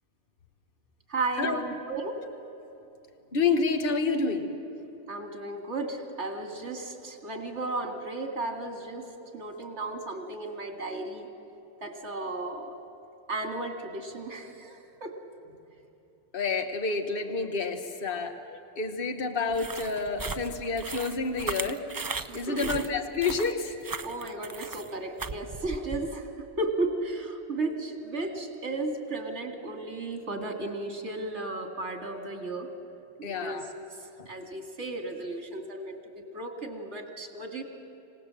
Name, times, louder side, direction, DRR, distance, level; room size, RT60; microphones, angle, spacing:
voice 1, 1.1-2.2 5.1-9.1 9.3-11.3 11.8-12.7 13.3-15.2 22.3-22.7 24.0-26.3 26.6-32.7 33.2-33.6 34.3-37.6, right 2 dB, 80° right, 5 dB, 2.5 m, -34 dB
voice 2, 3.3-4.5 16.3-21.8 22.3-23.7 33.2-33.7 34.2-34.3, left 4 dB, 55° left, 6 dB, 1.4 m, -29 dB
sound 1, 19.5-26.1, right 4 dB, 30° right, 0.4 m, -37 dB
26.5 x 18.0 x 7.6 m, 3.0 s
omnidirectional pair, 1.1 m